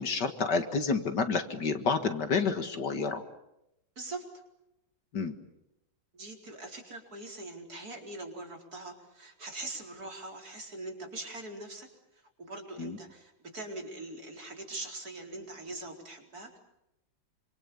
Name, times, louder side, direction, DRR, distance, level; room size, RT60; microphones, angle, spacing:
voice 1, 0.0-3.2 5.1-5.3 12.8-13.0, left 4 dB, 60° left, 8 dB, 2.3 m, -29 dB
voice 2, 6.1-16.6, right 2 dB, 50° right, 2 dB, 4.8 m, -42 dB
27.5 x 26.0 x 7.1 m, 0.86 s
omnidirectional pair, 2.2 m